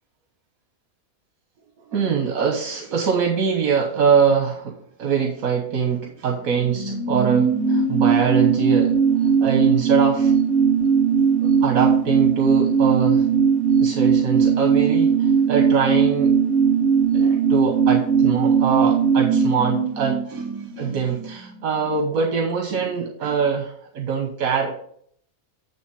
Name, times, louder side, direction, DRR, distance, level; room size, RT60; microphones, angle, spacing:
voice 1, 1.9-8.9 9.4-10.3 11.6-13.3 13.8-16.3 17.1-24.8, right 6 dB, 80° right, 2 dB, 1.4 m, -23 dB
sound 1, 6.4-21.6 21.9-22.0, right 6 dB, ahead, 1.9 m, -19 dB
9.3 x 3.2 x 6.3 m, 0.62 s
omnidirectional pair, 1.5 m